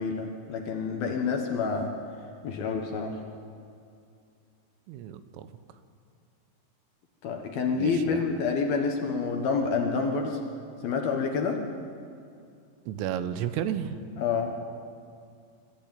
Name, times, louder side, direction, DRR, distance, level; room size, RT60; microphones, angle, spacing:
voice 1, 0.0-2.0 2.4-3.2 7.2-10.4 10.8-11.6 14.2-14.5, left 5 dB, 65° left, 3 dB, 2.7 m, -28 dB
voice 2, 4.9-5.5 7.8-8.2 12.9-14.0, right 10 dB, 90° right, 11 dB, 3.5 m, -32 dB
26.0 x 13.5 x 9.1 m, 2.4 s
omnidirectional pair, 5.6 m